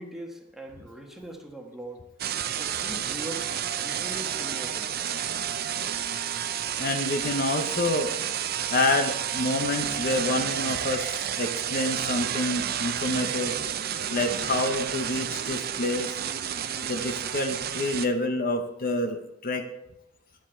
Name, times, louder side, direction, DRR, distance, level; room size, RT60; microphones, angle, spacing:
voice 1, 0.0-2.0 2.6-4.9, right 1 dB, ahead, 1 dB, 1.3 m, -41 dB
sound 1, 2.2-18.1, right 9 dB, 50° right, 0.5 m, -30 dB
voice 2, 6.8-8.1 8.7-13.6 14.1-16.2 16.9-19.6, left 2 dB, 50° left, 5 dB, 0.8 m, -28 dB
10.5 x 7.4 x 4.4 m, 0.86 s
head